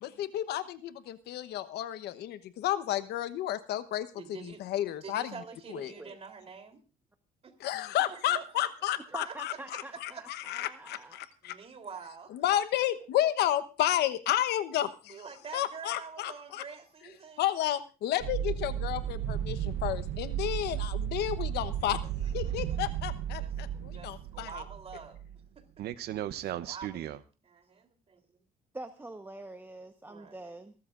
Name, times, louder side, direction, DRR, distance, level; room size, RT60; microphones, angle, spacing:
voice 1, 0.0-4.1 4.4-5.3 5.7-5.9 7.6-11.5 12.3-15.1 15.5-16.6 17.4-22.0 22.3-24.6, left 12 dB, 75° left, 13 dB, 1.1 m, -32 dB
voice 2, 4.2-4.6 5.0-6.8 7.4-7.7 8.1-8.7 9.2-10.2 11.4-12.6 15.1-17.4 22.4-22.8 23.4-25.2 25.6-25.7 26.6-28.4 30.1-30.5, right 6 dB, 35° right, 6 dB, 3.5 m, -47 dB
voice 3, 5.7-6.2 9.1-11.2 28.7-30.7, right 2 dB, 10° right, 7 dB, 1.1 m, -45 dB
sound 1, 18.2-25.5 25.8-27.2, right 10 dB, 70° right, 0.8 m, -34 dB
29.0 x 13.5 x 2.5 m, 0.33 s
cardioid pair, 110°, 17 cm